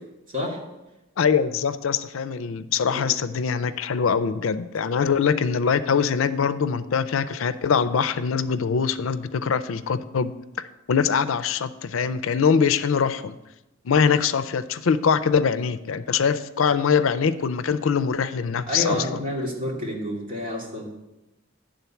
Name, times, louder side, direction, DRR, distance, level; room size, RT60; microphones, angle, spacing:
voice 1, 1.2-10.3 10.9-13.3 13.9-19.0, left 6 dB, 80° left, 13 dB, 0.5 m, -23 dB
voice 2, 18.7-20.8, left 1 dB, 45° right, -3 dB, 2.1 m, -29 dB
10.5 x 3.8 x 6.9 m, 0.98 s
head